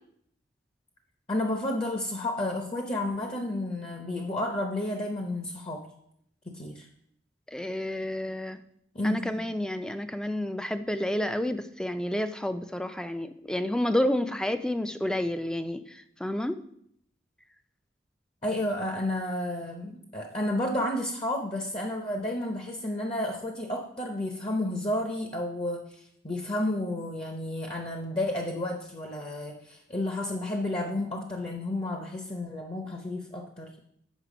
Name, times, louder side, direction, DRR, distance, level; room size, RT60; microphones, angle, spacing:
voice 1, 1.3-5.9 6.5-6.9 8.9-9.3 18.4-33.8, left 1 dB, 30° left, 3 dB, 0.7 m, -31 dB
voice 2, 7.5-8.6 9.0-16.6, left 1 dB, 5° left, 10 dB, 0.3 m, -30 dB
8.3 x 5.8 x 5.0 m, 0.72 s
head